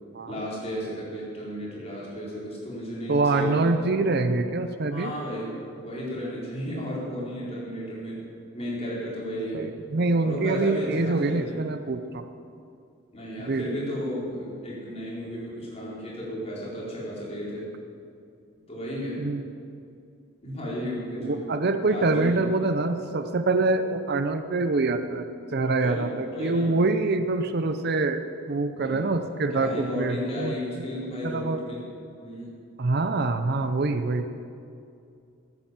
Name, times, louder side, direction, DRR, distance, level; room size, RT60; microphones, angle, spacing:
voice 1, 0.3-3.8 4.9-8.2 8.5-9.7 10.2-11.6 13.1-17.7 18.7-19.3 20.4-21.5 21.9-22.4 25.8-26.8 28.7-29.1 29.5-31.9 32.2-32.5, equal, 30° left, -6 dB, 4.2 m, -34 dB
voice 2, 3.1-5.1 9.5-12.2 13.4-13.6 19.2-19.4 21.2-28.2 28.5-30.8 31.2-31.6 32.8-34.3, right 3 dB, 50° right, 9 dB, 0.6 m, -25 dB
13.5 x 9.9 x 7.4 m, 2.5 s
head